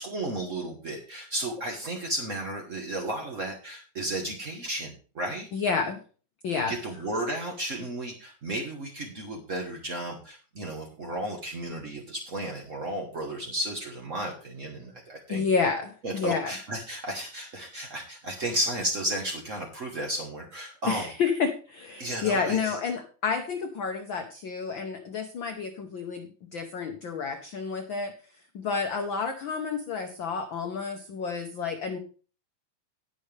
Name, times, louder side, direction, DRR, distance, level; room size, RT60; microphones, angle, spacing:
voice 1, 0.0-5.5 6.7-15.4 16.0-21.1 22.0-22.8, right 1 dB, 50° right, 1 dB, 0.9 m, -33 dB
voice 2, 5.5-6.0 6.4-6.7 15.3-16.5 20.9-28.1 28.5-32.0, left 5 dB, 65° left, 5 dB, 1.2 m, -30 dB
18.0 x 6.5 x 3.4 m, 0.38 s
omnidirectional pair, 3.4 m